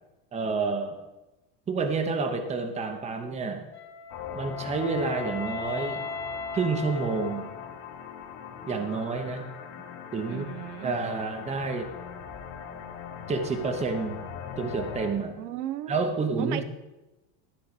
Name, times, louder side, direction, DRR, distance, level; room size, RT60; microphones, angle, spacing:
voice 1, 0.3-1.0 1.7-3.7 4.3-6.0 6.5-7.5 8.6-9.4 10.1-10.5 10.8-11.9 13.3-14.2 14.6-15.5 15.9-16.6, right 4 dB, 15° right, 6 dB, 0.8 m, -29 dB
Wind instrument woodwind instrument, 3.7-7.9, left 4 dB, 25° left, 1.3 m, -38 dB
sound 1, 4.1-15.1, left 7 dB, 60° left, 1.7 m, -41 dB
voice 2, 10.3-10.9 15.4-16.0 16.4-16.6, right 12 dB, 75° right, 11 dB, 1.0 m, -35 dB
13.5 x 4.6 x 8.3 m, 1.0 s
cardioid pair, 160°, 47 cm